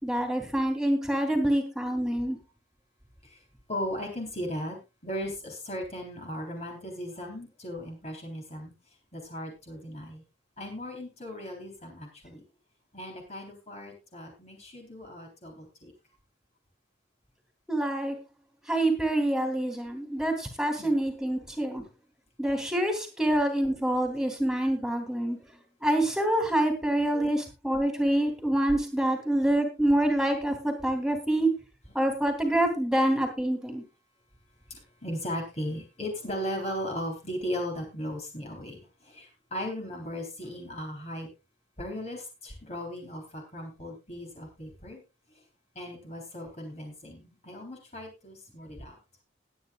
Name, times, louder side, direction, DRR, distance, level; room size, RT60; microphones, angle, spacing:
voice 1, 0.0-2.4 17.7-18.2 18.7-21.8 22.4-25.4 25.8-31.5 31.9-33.8, right 1 dB, 5° right, 4 dB, 3.0 m, -26 dB
voice 2, 3.7-4.8 5.0-8.7 9.1-10.2 10.6-12.4 12.9-15.9 20.8-20.9 27.1-27.3 34.7-41.3 41.8-45.0 45.8-48.9, equal, 35° left, 1 dB, 3.6 m, -37 dB
20.0 x 9.3 x 2.4 m, 0.27 s
head